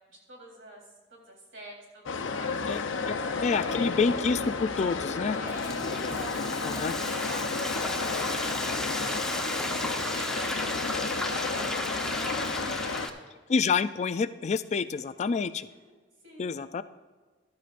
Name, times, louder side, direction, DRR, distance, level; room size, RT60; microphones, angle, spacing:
voice 1, 0.1-0.8 1.1-3.9 5.2-6.5 6.8-13.1 15.8-15.9 16.2-16.6, equal, 90° right, -1 dB, 3.7 m, -48 dB
sound 1, 2.1-13.1, left 4 dB, 85° left, 0.8 m, -32 dB
voice 2, 3.4-5.4 6.6-6.9 13.5-15.7 16.4-16.8, left 5 dB, 35° left, 13 dB, 0.4 m, -28 dB
Frying (food), 5.2-13.1, left 1 dB, 5° left, 0.7 m, -34 dB
14.5 x 12.0 x 2.5 m, 1.3 s
head